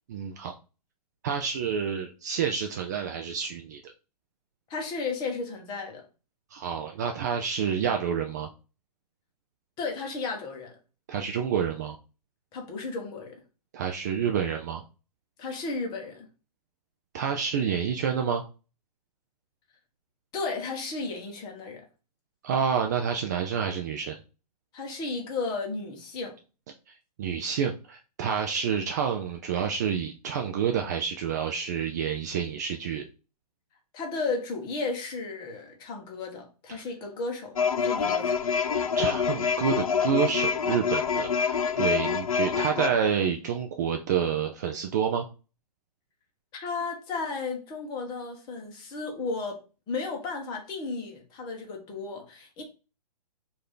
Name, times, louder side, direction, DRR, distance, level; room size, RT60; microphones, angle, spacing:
voice 1, 0.1-0.5 1.2-3.8 6.5-8.5 11.1-11.9 13.7-14.8 17.1-18.4 22.4-24.2 27.2-33.1 38.9-45.3, right 7 dB, 25° right, 0.4 m, -28 dB
voice 2, 4.7-6.0 9.8-10.7 12.5-13.4 15.4-16.3 20.3-21.8 24.7-26.4 33.9-38.4 46.5-49.6 49.9-52.6, left 4 dB, 20° left, 1.1 m, -34 dB
sound 1, 37.6-42.9, left 6 dB, 60° left, 0.5 m, -26 dB
4.6 x 2.7 x 3.7 m
figure-of-eight pair, 120°, 21 cm